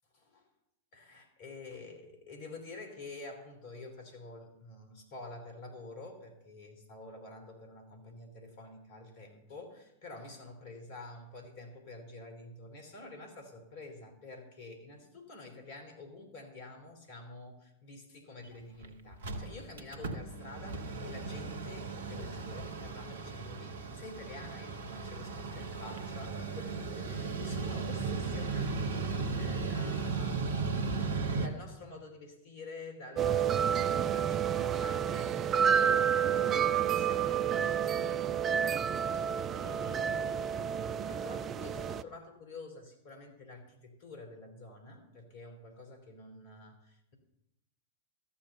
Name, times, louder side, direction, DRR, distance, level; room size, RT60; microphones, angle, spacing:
voice 1, 0.2-0.5 0.9-30.9 31.3-38.3 39.2-40.8 41.1-47.1, left 2 dB, 50° left, 4 dB, 3.0 m, -49 dB
Mechanical fan, 18.4-18.5 18.8-18.9 19.1-31.5, right 4 dB, 60° right, 1.0 m, -36 dB
sound 1, 33.2-42.0, right 8 dB, 25° right, 0.4 m, -29 dB
13.5 x 7.1 x 6.8 m, 0.83 s
figure-of-eight pair, 90°, 0 cm